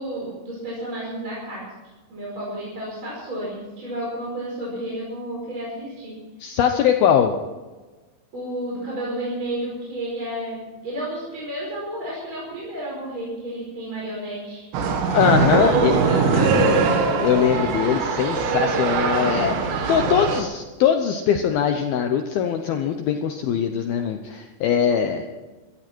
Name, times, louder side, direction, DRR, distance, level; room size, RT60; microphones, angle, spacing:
voice 1, 0.0-1.6 2.1-6.2 8.3-14.6 15.2-16.8, right 1 dB, 25° right, -5 dB, 5.5 m, -32 dB
voice 2, 6.4-7.3 15.1-16.0 17.2-25.2, left 8 dB, 75° left, 5 dB, 2.4 m, -21 dB
sound 1, 14.7-20.4, right 4 dB, 80° right, 3.9 m, -21 dB
23.0 x 14.0 x 4.5 m, 1.2 s
omnidirectional pair, 5.3 m